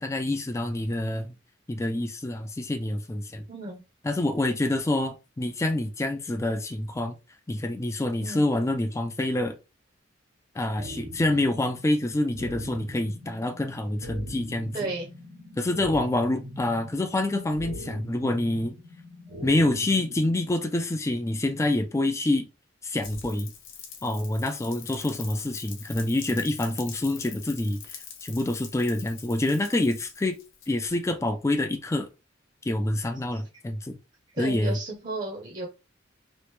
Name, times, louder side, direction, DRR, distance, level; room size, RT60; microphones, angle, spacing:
voice 1, 0.0-1.4 1.7-3.4 4.0-7.2 7.5-9.6 10.6-14.9 15.6-18.8 19.4-22.5 22.8-23.5 24.0-30.4 30.7-32.1 32.7-34.0 34.4-34.7, left 1 dB, 15° left, 0.3 m, -27 dB
voice 2, 3.5-3.8 8.2-8.4 14.7-15.1 33.3-33.4 34.3-35.7, right 2 dB, 40° right, 0.7 m, -33 dB
sound 1, 10.8-20.8, equal, 70° right, 1.5 m, -42 dB
Rain, 23.0-31.1, left 7 dB, 85° left, 0.8 m, -44 dB
3.0 x 2.5 x 3.2 m
head